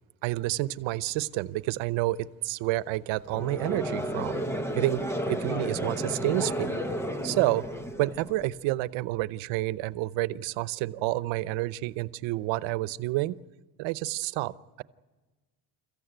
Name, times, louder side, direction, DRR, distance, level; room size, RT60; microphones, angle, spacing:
voice 1, 0.2-4.4 4.7-5.0 5.3-6.8 7.2-7.6 8.0-13.3 13.8-14.8, right 18 dB, 90° right, 16 dB, 0.9 m, -29 dB
Conversation / Crowd, 3.3-8.6, equal, 5° left, 0.6 m, -32 dB
29.0 x 15.0 x 9.1 m, 1.3 s
cardioid pair, 180°, 45 cm